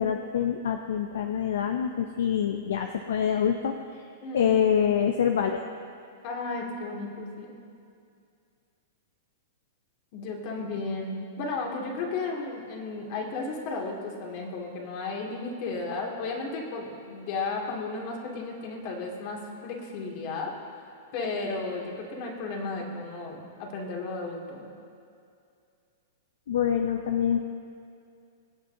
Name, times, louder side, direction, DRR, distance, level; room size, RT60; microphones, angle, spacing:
voice 1, 0.0-3.7 4.3-5.6 26.5-27.5, left 8 dB, 75° left, 5 dB, 0.6 m, -25 dB
voice 2, 4.2-4.5 6.2-7.6 10.1-20.5 21.1-24.7, left 3 dB, 50° left, -1 dB, 2.4 m, -34 dB
23.0 x 8.5 x 2.8 m, 2.4 s
hypercardioid pair, 115°, 0 cm